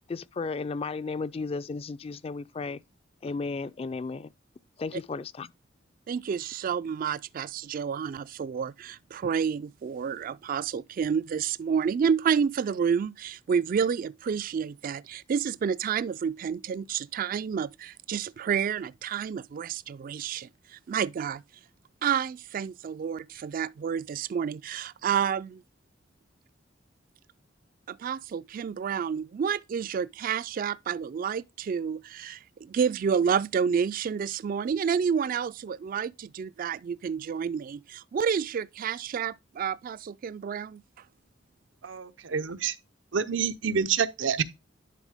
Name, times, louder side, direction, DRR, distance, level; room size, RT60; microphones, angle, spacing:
voice 1, 0.1-2.8 3.2-4.3 4.8-5.5, left 4 dB, 30° left, 0.3 m, -34 dB
voice 2, 6.1-21.4 22.0-25.6 27.9-40.8, right 7 dB, 50° right, 0.3 m, -29 dB
voice 3, 41.8-42.7 43.1-44.4, right 6 dB, 90° right, 0.7 m, -27 dB
11.0 x 4.0 x 3.5 m
head